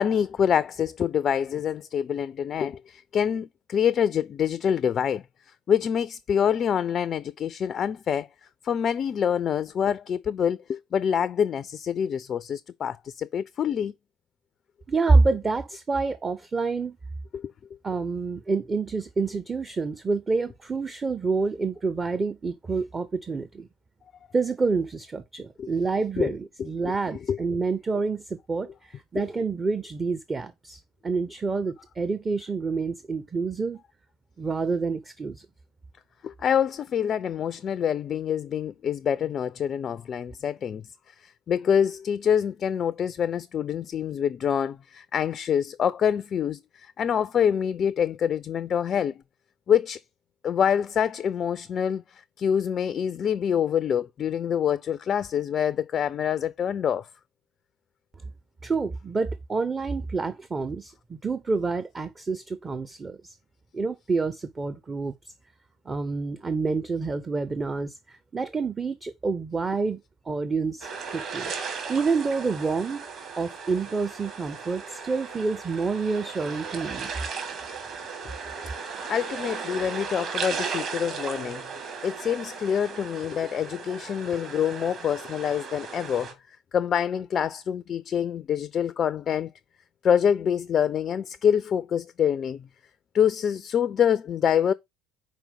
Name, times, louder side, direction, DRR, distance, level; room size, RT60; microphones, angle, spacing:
voice 1, 0.0-5.2 5.7-8.3 8.6-13.9 17.3-17.5 25.6-25.7 26.2-26.3 26.6-27.0 27.3-27.4 29.2-29.3 36.2-40.8 41.2-49.2 49.7-50.0 50.4-57.1 79.1-81.6 82.0-86.3 86.7-89.5 90.0-92.7 93.1-94.7, left 8 dB, 40° left, 0.3 m, -26 dB
voice 2, 14.9-17.0 17.8-23.7 24.3-33.8 34.4-35.5 58.6-63.4 63.7-65.1 65.9-70.0 70.3-71.5 71.9-73.1 73.4-77.1, right 4 dB, 25° right, 0.5 m, -28 dB
sound 1, 70.8-86.3, right 5 dB, 45° right, 1.9 m, -36 dB
5.1 x 4.5 x 5.1 m
figure-of-eight pair, 60°, 0 cm